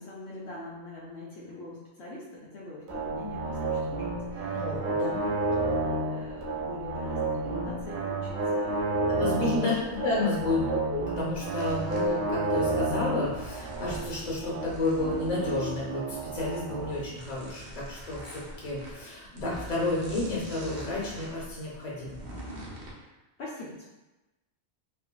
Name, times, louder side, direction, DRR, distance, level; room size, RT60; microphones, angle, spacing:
voice 1, 0.0-4.0 4.3-9.7 22.9-23.1 23.4-23.9, left 2 dB, 70° left, -6 dB, 0.8 m, -42 dB
sound 1, 2.9-16.9, right 2 dB, 80° right, 0.9 m, -31 dB
voice 2, 4.5-5.2 9.1-9.7 10.0-22.2, left 2 dB, 40° left, -6 dB, 0.8 m, -31 dB
sound 2, 11.6-22.9, equal, 50° right, 0.6 m, -44 dB
3.4 x 2.1 x 2.2 m, 1.1 s
omnidirectional pair, 1.2 m